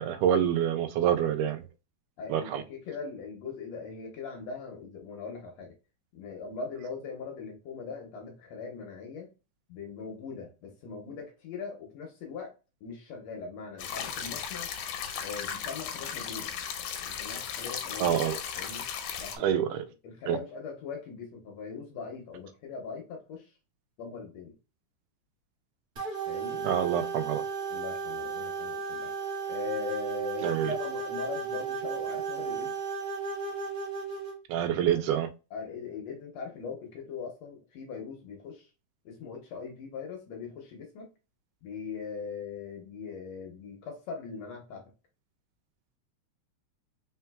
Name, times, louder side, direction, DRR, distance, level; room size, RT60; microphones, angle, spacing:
voice 1, 0.0-1.7 2.3-2.6 18.0-18.4 19.4-19.9 20.3-20.4 26.6-27.4 30.4-30.7 34.5-35.3, right 9 dB, 85° right, 2.1 m, -27 dB
voice 2, 2.2-5.7 6.1-9.3 9.7-14.7 15.2-16.5 17.0-18.1 18.5-18.9 19.2-23.5 24.0-24.6 26.3-26.7 27.7-29.1 29.5-32.8 35.5-38.7 39.0-41.1 41.6-44.9, left 5 dB, 70° left, 1.7 m, -40 dB
sound 1, 13.8-19.4, left 8 dB, 85° left, 2.1 m, -36 dB
sound 2, 26.0-34.3, right 5 dB, 40° right, 1.6 m, -34 dB
4.5 x 3.7 x 2.2 m
omnidirectional pair, 3.6 m